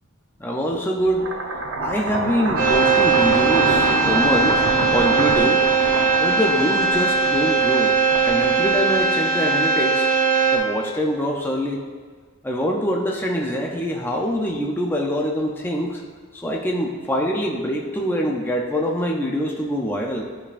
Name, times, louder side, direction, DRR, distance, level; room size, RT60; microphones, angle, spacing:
voice 1, 0.4-1.3 1.8-5.6 6.1-8.0 8.3-10.1 10.5-11.8 12.4-16.0 16.3-20.3, equal, 10° left, -1 dB, 0.5 m, -24 dB
sound 1, 1.1-9.3, right 2 dB, 60° right, 0.7 m, -26 dB
sound 2, 2.6-10.6, right 4 dB, 45° right, 1.1 m, -19 dB
10.5 x 5.3 x 2.5 m, 1.5 s
head